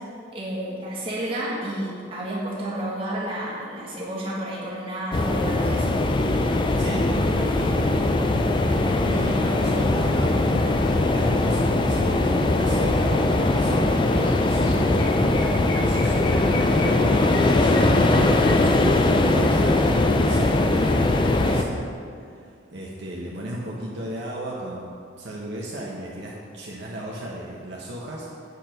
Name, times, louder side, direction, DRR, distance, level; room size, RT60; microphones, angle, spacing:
voice 1, 0.3-6.0, right 1 dB, 30° right, -7 dB, 1.7 m, -31 dB
sound 1, 5.1-21.6, left 2 dB, 25° left, 0.4 m, -21 dB
voice 2, 6.8-8.1 8.6-21.9 22.3-24.9 25.2-28.3, right 1 dB, 60° right, -4 dB, 0.9 m, -34 dB
Chirp tweet, 14.2-14.4 14.6-19.2, left 3 dB, 85° left, 1.0 m, -37 dB
8.2 x 4.4 x 5.2 m, 2.3 s
head